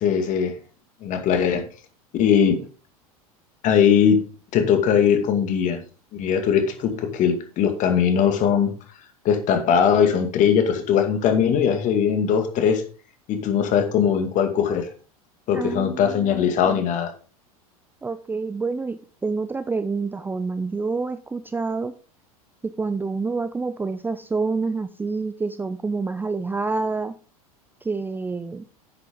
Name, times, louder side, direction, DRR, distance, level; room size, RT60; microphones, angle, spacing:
voice 1, 0.0-0.5 1.0-1.6 2.1-2.6 3.6-4.2 4.5-5.8 6.1-8.7 9.2-12.8 13.3-14.9 15.5-17.1, left 7 dB, 40° left, 7 dB, 2.2 m, -20 dB
voice 2, 15.5-16.9 18.0-21.9 22.6-27.1 27.8-28.7, right 4 dB, 10° right, 12 dB, 0.5 m, -28 dB
10.0 x 8.2 x 3.7 m, 0.38 s
figure-of-eight pair, 85°, 19 cm